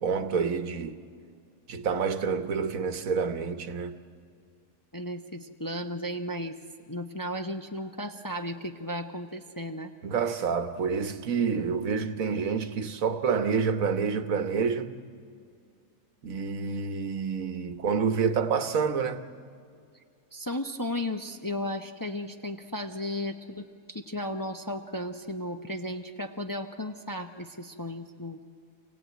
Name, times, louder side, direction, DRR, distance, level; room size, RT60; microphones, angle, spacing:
voice 1, 0.0-1.0 1.7-4.0 10.0-14.9 16.2-19.2, right 6 dB, 75° right, 1.5 m, -28 dB
voice 2, 4.9-6.6 6.9-9.9 20.3-28.4, left 1 dB, 20° left, 0.7 m, -35 dB
27.0 x 17.5 x 9.2 m
omnidirectional pair, 1.5 m